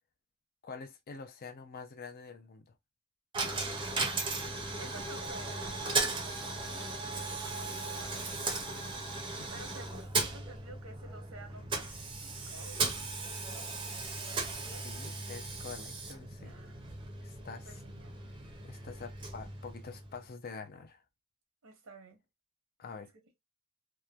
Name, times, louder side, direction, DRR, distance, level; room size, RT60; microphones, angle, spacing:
voice 1, 0.6-2.7 9.4-9.6 14.5-16.6 17.2-17.8 18.6-21.0 22.8-23.1, left 5 dB, 45° left, 0.5 m, -47 dB
Coin (dropping), 3.3-20.3, right 3 dB, 25° right, 0.6 m, -37 dB
voice 2, 4.8-6.1 6.6-7.2 7.4-9.0 9.5-12.8 13.5-14.9 16.4-16.9 17.7-18.1 21.6-22.2, right 3 dB, 90° right, 0.9 m, -52 dB
2.9 x 2.1 x 2.3 m
head